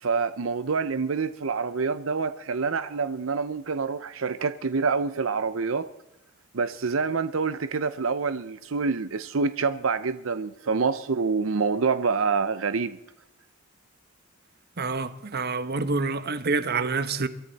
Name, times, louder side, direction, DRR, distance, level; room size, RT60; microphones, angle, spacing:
voice 1, 0.0-5.9 6.5-13.0, right 4 dB, 85° right, 0.7 m, -27 dB
voice 2, 14.8-17.3, right 4 dB, 55° right, 1.1 m, -27 dB
24.0 x 14.0 x 4.1 m
head